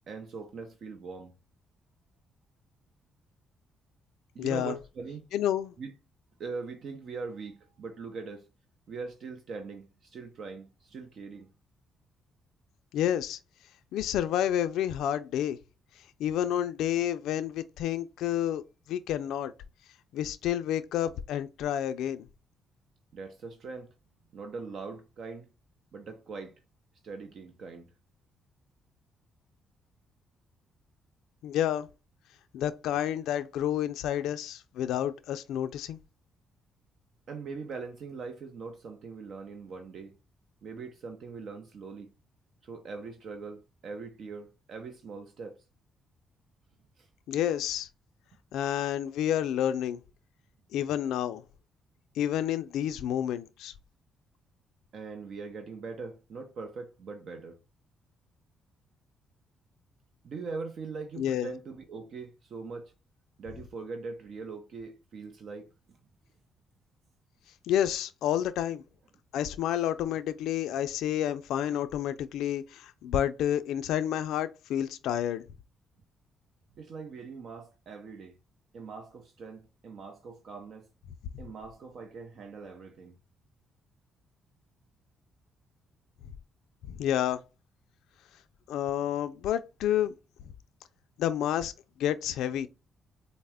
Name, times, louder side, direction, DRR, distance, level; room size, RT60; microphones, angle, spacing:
voice 1, 0.1-1.3 4.3-5.3 5.8-5.9 6.4-8.5 8.9-11.5 23.1-23.9 24.3-25.5 25.9-26.6 27.0-27.9 37.3-40.2 40.6-42.1 42.6-45.6 47.0-47.1 54.9-57.6 60.2-62.9 63.4-66.0 71.7-71.8 76.8-78.4 78.7-80.9 81.4-83.1, right 4 dB, 60° right, 0.6 m, -41 dB
voice 2, 4.4-4.7 5.3-5.7 12.9-13.4 13.9-15.6 16.2-18.6 18.9-19.5 20.1-22.3 31.4-31.9 32.5-36.0 47.3-47.9 48.5-50.0 50.7-51.4 52.2-53.7 61.2-61.5 67.7-68.8 69.3-75.4 86.9-87.4 88.7-90.1 91.2-91.7 92.0-92.7, left 11 dB, 85° left, 0.3 m, -29 dB
4.2 x 2.0 x 3.4 m
cardioid pair, 90°, 0 cm